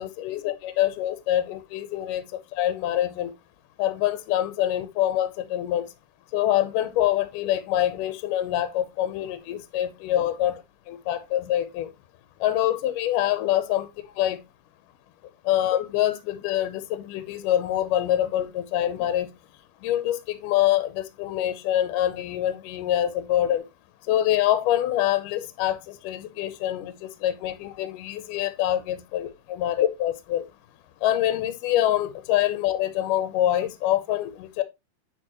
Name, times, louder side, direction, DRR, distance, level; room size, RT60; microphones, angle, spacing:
voice 1, 0.0-2.2 2.6-3.3 3.8-5.9 6.3-10.6 10.9-11.9 12.4-13.9 14.2-14.4 15.5-19.3 19.8-23.6 24.1-26.9 27.2-30.4 31.0-34.6, left 12 dB, 75° left, 2.0 m, -25 dB
9.0 x 4.3 x 2.9 m
omnidirectional pair, 4.3 m